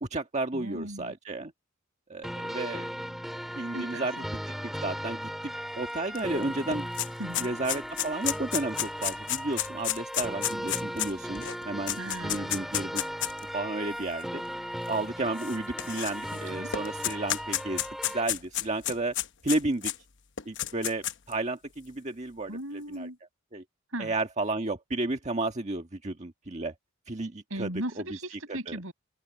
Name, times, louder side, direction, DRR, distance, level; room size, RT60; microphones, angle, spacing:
voice 1, 0.0-1.5 2.1-2.9 3.5-4.1 4.6-6.9 7.4-13.0 13.5-14.4 14.9-19.1 19.4-19.9 20.4-23.1 23.5-23.6 24.0-26.7 27.1-27.7 28.3-28.8, right 2 dB, 35° right, 1.5 m, -32 dB
voice 2, 0.5-1.1 3.7-4.2 7.2-7.5 12.0-12.5 16.3-16.7 22.5-23.2 23.9-24.1 27.5-28.9, right 1 dB, 70° right, 6.8 m, -37 dB
sound 1, 2.2-18.2, equal, ahead, 3.2 m, -37 dB
sound 2, 6.2-6.3 6.5-13.4 14.2-14.3 15.4-16.4 16.7-20.0 20.4-21.3, left 12 dB, 55° left, 1.0 m, -31 dB
open air
head